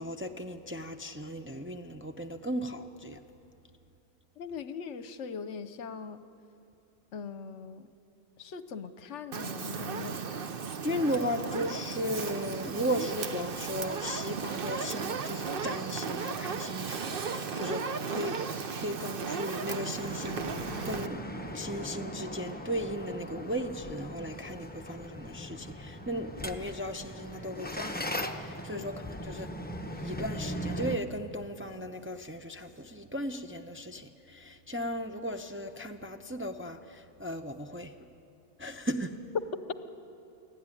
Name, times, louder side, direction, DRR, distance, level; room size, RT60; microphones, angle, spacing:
voice 1, 0.0-3.2 10.8-18.4 18.8-28.1 28.4-29.5 29.9-38.1 38.6-39.2, equal, 15° right, 5 dB, 0.4 m, -36 dB
voice 2, 4.4-6.2 7.1-7.9 8.4-10.2 17.6-17.8 28.7-28.9, left 6 dB, 65° left, 12 dB, 1.1 m, -41 dB
Fire, 9.3-21.1, right 5 dB, 50° right, 1.0 m, -35 dB
sound 1, 19.9-31.0, equal, 10° left, 0.8 m, -39 dB
28.5 x 11.5 x 9.8 m, 2.8 s
omnidirectional pair, 1.4 m